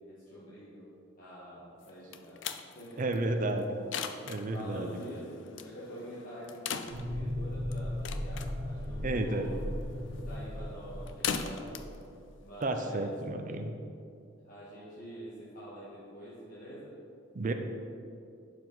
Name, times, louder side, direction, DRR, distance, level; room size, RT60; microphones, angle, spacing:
voice 1, 0.0-0.9 1.2-2.4 2.7-3.3 4.5-9.6 10.3-11.8 12.4-13.1 14.4-16.9, equal, 45° left, -9 dB, 1.7 m, -46 dB
sound 1, 1.8-13.3, left 7 dB, 65° left, 0.4 m, -41 dB
voice 2, 3.0-3.6 4.2-5.0 9.0-9.5 12.6-13.7 17.3-17.5, right 2 dB, 40° right, 6 dB, 0.6 m, -32 dB
sound 2, 6.9-12.3, left 1 dB, 90° right, 1.1 m, -37 dB
11.5 x 4.8 x 4.0 m, 2.5 s
head